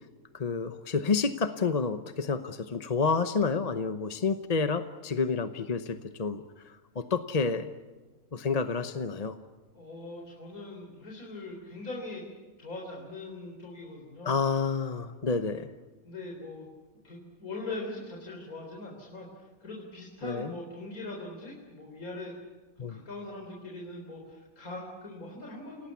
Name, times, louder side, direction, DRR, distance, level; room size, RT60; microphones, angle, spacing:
voice 1, 0.3-6.4 7.0-7.7 8.3-9.4 14.2-15.7 20.2-20.5 22.8-23.0, left 4 dB, 35° left, 9 dB, 0.8 m, -29 dB
voice 2, 9.7-12.2 12.6-14.4 16.0-16.7 17.0-22.3 22.8-25.9, left 2 dB, 80° left, -2 dB, 4.3 m, -41 dB
28.5 x 18.0 x 8.4 m, 1.3 s
omnidirectional pair, 1.5 m